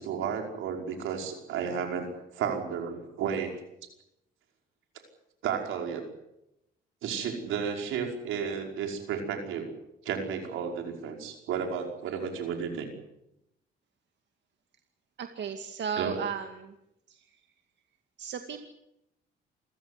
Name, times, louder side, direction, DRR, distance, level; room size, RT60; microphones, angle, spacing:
voice 1, 0.0-3.5 5.4-6.0 7.0-9.7 10.1-12.9 16.0-16.2, right 7 dB, 90° right, 3 dB, 5.4 m, -32 dB
voice 2, 15.2-16.7 18.2-18.6, right 7 dB, 60° right, 6 dB, 2.3 m, -34 dB
28.0 x 15.0 x 9.6 m, 0.84 s
cardioid pair, 90°, 20 cm